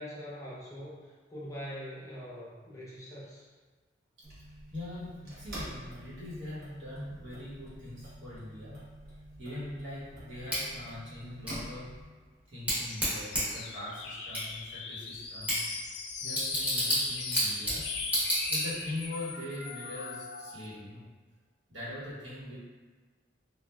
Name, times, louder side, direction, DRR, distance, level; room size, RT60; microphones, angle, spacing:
voice 1, 0.0-3.4 22.5-22.6, equal, 15° left, -7 dB, 0.6 m, -43 dB
sound 1, 4.2-12.1, right 1 dB, 55° right, 0.8 m, -47 dB
voice 2, 4.7-8.8 9.4-12.0 12.5-15.7 16.2-17.9 18.5-21.1 21.7-22.6, left 1 dB, 85° right, -10 dB, 1.2 m, -42 dB
Bicycle / Tick, 10.5-19.1, equal, 10° right, 0.9 m, -33 dB
sound 2, 12.7-20.7, left 5 dB, 65° left, 0.3 m, -39 dB
3.0 x 2.3 x 2.2 m, 1.4 s
head